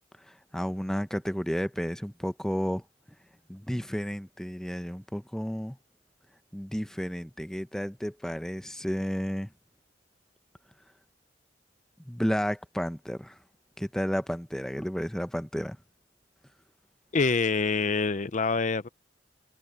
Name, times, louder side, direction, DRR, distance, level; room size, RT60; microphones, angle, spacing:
voice 1, 0.2-2.8 3.5-5.8 6.5-9.5 12.0-13.4 13.8-15.8, equal, 5° left, 0.8 m, -32 dB
voice 2, 17.1-18.9, left 4 dB, 40° left, 0.6 m, -26 dB
head